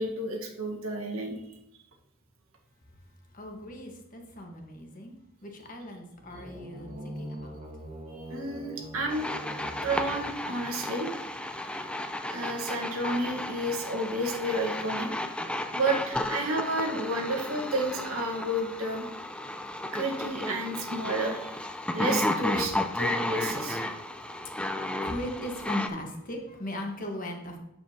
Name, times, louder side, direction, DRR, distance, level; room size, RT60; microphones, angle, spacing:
voice 1, 0.0-1.4 8.3-9.2 9.8-11.1 12.3-15.1 15.7-19.1 19.9-21.6 21.9-23.8, right 1 dB, 85° right, 0 dB, 1.5 m, -31 dB
voice 2, 3.3-5.2 5.4-7.6 23.9-27.6, left 1 dB, 40° left, 2 dB, 1.4 m, -39 dB
sound 1, 6.2-10.9, right 1 dB, 30° right, 1.5 m, -43 dB
sound 2, 9.1-25.9, left 1 dB, 5° left, 0.4 m, -33 dB
8.6 x 7.3 x 2.9 m, 0.85 s
head